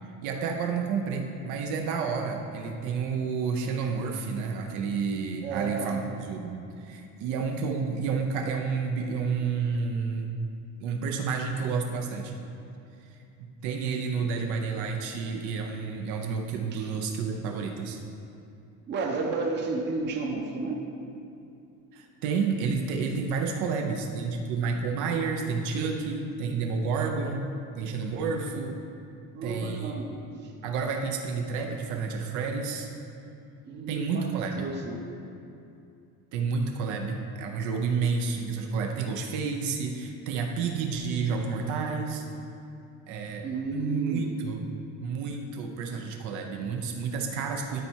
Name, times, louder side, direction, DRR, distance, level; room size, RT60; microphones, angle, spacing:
voice 1, 0.2-10.3 10.8-12.3 13.4-18.0 21.9-27.5 27.7-28.8 29.4-30.0 30.6-32.9 33.8-34.7 36.3-42.3 43.1-43.4 43.7-44.6 45.0-47.8, right 5 dB, 70° right, 3 dB, 0.9 m, -30 dB
voice 2, 5.4-5.9 16.7-16.9 18.9-20.9 29.3-30.1 30.4-30.5 33.7-35.0 43.4-44.4, right 3 dB, 35° right, 1 dB, 0.8 m, -32 dB
12.5 x 4.3 x 4.6 m, 2.6 s
cardioid pair, 175°, 31 cm